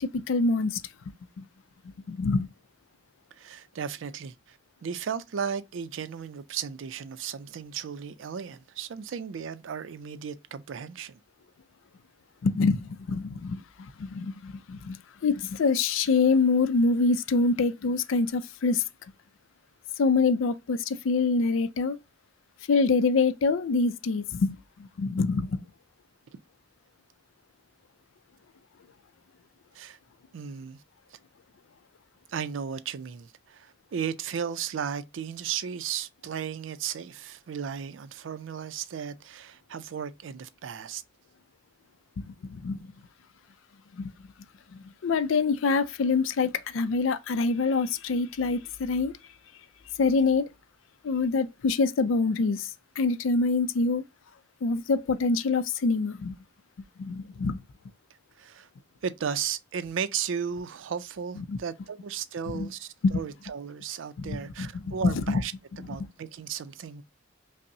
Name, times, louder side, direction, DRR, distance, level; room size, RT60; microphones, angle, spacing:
voice 1, 0.0-0.8 1.4-1.5 1.8-2.5 12.4-18.8 20.0-22.0 22.7-25.6 42.2-42.9 43.9-44.1 44.7-49.1 50.0-50.5 51.0-54.0 54.6-56.4 57.0-57.6 61.5-61.6 62.5-62.7 63.0-63.2 64.2-65.4 65.8-65.9, left 4 dB, 85° left, 0.4 m, -26 dB
voice 2, 3.3-4.6 4.8-11.2 29.7-30.0 30.3-30.8 32.3-41.0 58.4-58.7 59.0-67.0, right 7 dB, 80° right, 0.4 m, -35 dB
5.2 x 2.0 x 2.6 m
head